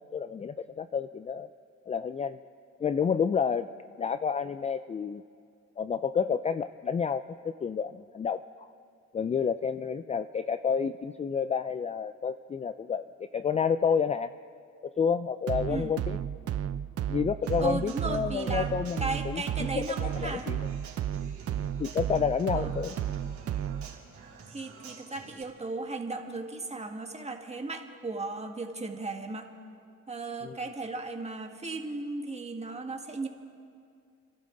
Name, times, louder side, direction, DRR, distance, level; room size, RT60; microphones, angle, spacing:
voice 1, 0.1-1.5 1.9-2.4 2.8-3.7 4.0-5.2 5.8-8.7 9.1-14.3 14.8-16.2 17.1-19.4 19.7-20.7 21.6-23.0 30.4-30.6, left 6 dB, 25° left, 12 dB, 0.3 m, -30 dB
sound 1, 15.5-24.0, right 10 dB, 50° right, 0.6 m, -33 dB
Human voice / Acoustic guitar, 17.4-25.4, right 5 dB, 75° right, 3.3 m, -50 dB
voice 2, 17.6-18.7 19.0-20.5 22.5-22.7 24.5-29.5 30.1-33.3, right 3 dB, 20° right, 3 dB, 1.7 m, -36 dB
29.5 x 12.5 x 3.9 m, 2.3 s
cardioid pair, 90°, 30 cm